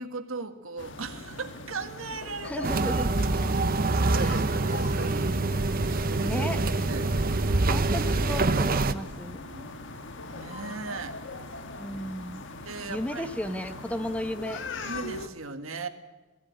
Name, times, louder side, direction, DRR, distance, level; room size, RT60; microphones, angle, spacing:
voice 1, 0.0-2.7 3.0-3.1 3.9-5.4 5.8-6.5 6.8-7.1 9.3-9.7 10.3-11.2 12.7-13.3 14.8-15.9, right 3 dB, 90° right, 7 dB, 1.8 m, -38 dB
sound 1, 0.8-15.3, left 2 dB, 65° left, 1.5 m, -41 dB
voice 2, 2.4-3.1 4.2-4.4 6.2-6.6 7.7-9.4 11.8-12.5 12.9-14.6, equal, 5° left, 9 dB, 1.1 m, -34 dB
sound 2, 2.6-8.9, right 2 dB, 45° right, 0.9 m, -25 dB
20.0 x 15.5 x 9.5 m, 1.2 s
head